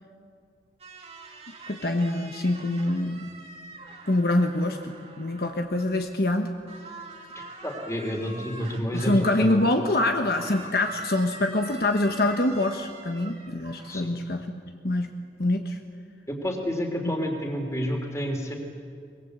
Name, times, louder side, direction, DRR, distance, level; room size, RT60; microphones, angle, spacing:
sound 1, 0.8-6.4 6.7-14.0, right 3 dB, 35° right, 2.3 m, -45 dB
voice 1, 1.7-3.3 4.1-6.5 8.9-15.1 15.4-15.8 17.1-17.2, left 1 dB, 60° left, 5 dB, 1.2 m, -25 dB
voice 2, 7.3-9.6 13.9-14.1 16.3-18.5, equal, 15° left, 3 dB, 3.2 m, -30 dB
23.5 x 21.5 x 8.1 m, 2.2 s
head